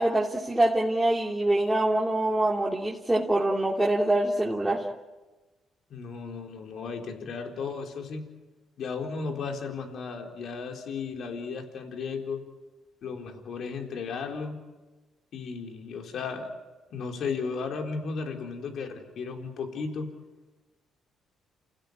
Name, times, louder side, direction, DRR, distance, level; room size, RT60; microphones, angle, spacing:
voice 1, 0.0-4.9, right 1 dB, 10° right, -3 dB, 2.9 m, -25 dB
voice 2, 5.9-8.2 8.8-12.4 13.0-14.6 15.3-16.5 16.9-20.1, left 5 dB, 65° left, 3 dB, 4.2 m, -35 dB
29.0 x 16.5 x 9.7 m, 1.2 s
cardioid pair, 90°, 0 cm